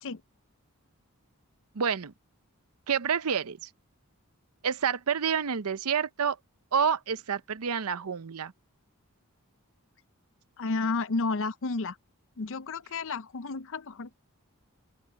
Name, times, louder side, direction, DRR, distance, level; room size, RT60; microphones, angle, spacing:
voice 1, 1.7-2.1 2.9-3.7 4.6-6.4 6.7-8.5, right 7 dB, 80° right, 0.7 m, -28 dB
voice 2, 10.6-12.0 12.4-14.1, left 3 dB, 60° left, 0.6 m, -31 dB
open air
head